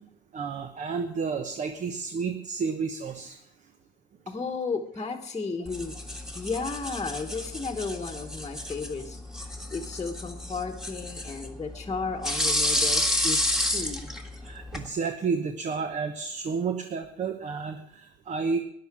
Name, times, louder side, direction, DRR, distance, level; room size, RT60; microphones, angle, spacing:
voice 1, 0.3-3.4 14.4-18.6, right 5 dB, 45° right, 7 dB, 1.0 m, -31 dB
voice 2, 4.3-5.9 6.3-9.2 9.4-14.1, left 4 dB, 20° left, 3 dB, 1.3 m, -34 dB
sound 1, 5.6-14.9, left 1 dB, 5° right, 1.8 m, -31 dB
13.5 x 10.5 x 6.1 m, 0.73 s
cardioid pair, 110°, 17 cm